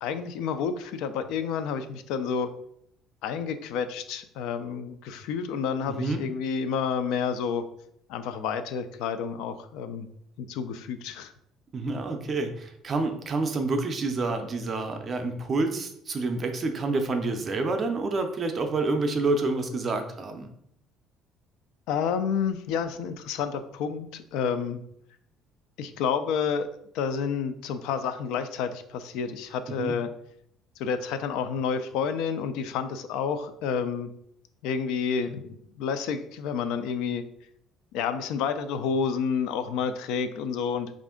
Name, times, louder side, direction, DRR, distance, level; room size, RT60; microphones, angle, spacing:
voice 1, 0.0-2.5 3.2-7.7 8.1-10.1 10.4-11.3 21.9-24.8 25.8-26.7 26.9-30.1 30.8-34.1 34.6-37.2 37.9-40.9, left 6 dB, 75° left, 10 dB, 0.4 m, -29 dB
voice 2, 5.9-6.2 11.7-20.5 29.8-29.9, right 3 dB, 25° right, 6 dB, 0.4 m, -28 dB
4.2 x 2.5 x 3.6 m, 0.71 s
cardioid pair, 165°, 0 cm